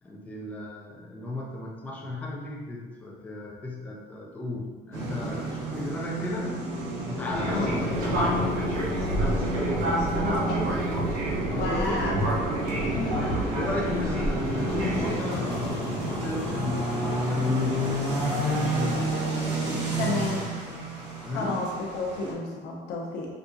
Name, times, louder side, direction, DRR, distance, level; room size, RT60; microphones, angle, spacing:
voice 1, 0.0-6.6 7.0-8.7 11.5-12.1 13.6-19.1 19.8-20.5 21.2-21.6, left 2 dB, 10° left, -2 dB, 0.3 m, -34 dB
sound 1, 4.9-22.3, right 1 dB, 75° right, 1.1 m, -31 dB
Fixed-wing aircraft airplane, 7.3-15.1, right 1 dB, 55° right, 0.8 m, -28 dB
voice 2, 10.2-10.8 11.5-12.3 12.9-13.2 20.0-20.4 21.3-21.7 21.9-23.3, left 3 dB, 85° left, -2 dB, 0.8 m, -31 dB
sound 2, 12.7-20.4, left 3 dB, 50° left, 0.7 m, -38 dB
5.0 x 2.7 x 2.3 m, 1.4 s
cardioid pair, 180°, 18 cm